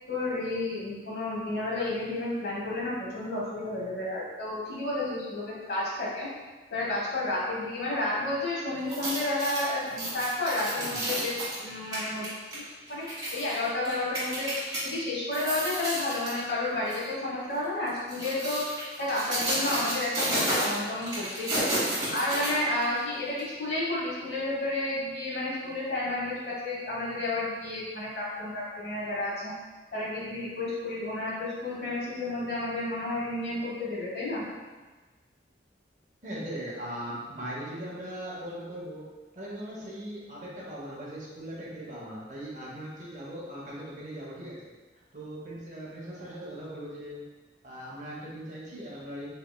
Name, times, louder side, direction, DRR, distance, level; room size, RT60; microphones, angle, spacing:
voice 1, 0.1-6.3 6.7-12.3 12.5-12.6 12.9-14.5 14.8-18.7 19.0-21.8 22.1-29.5 29.9-34.4, left 2 dB, 70° left, -6 dB, 1.1 m, -31 dB
sound 1, 8.8-14.8 15.2-16.4 16.9-17.1 17.9-23.0 23.4-23.5, right 1 dB, 20° right, 1.2 m, -32 dB
voice 2, 10.8-11.1 36.2-39.1 39.3-44.6 44.9-47.2 47.6-49.3, right 1 dB, 45° right, -5 dB, 0.8 m, -39 dB
4.2 x 3.1 x 2.2 m, 1.3 s
head